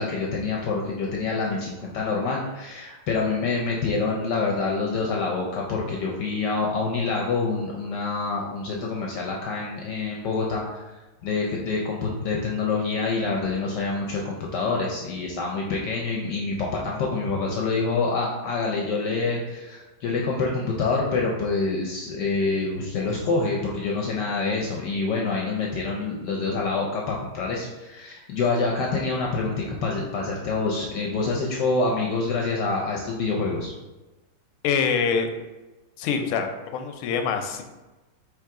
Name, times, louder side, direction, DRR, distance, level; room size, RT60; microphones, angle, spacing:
voice 1, 0.0-10.9 11.2-33.7, left 3 dB, 70° left, -2 dB, 1.0 m, -26 dB
voice 2, 34.6-35.3 36.0-37.6, left 6 dB, 90° left, 6 dB, 1.5 m, -25 dB
4.6 x 3.1 x 3.5 m, 1.1 s
omnidirectional pair, 2.3 m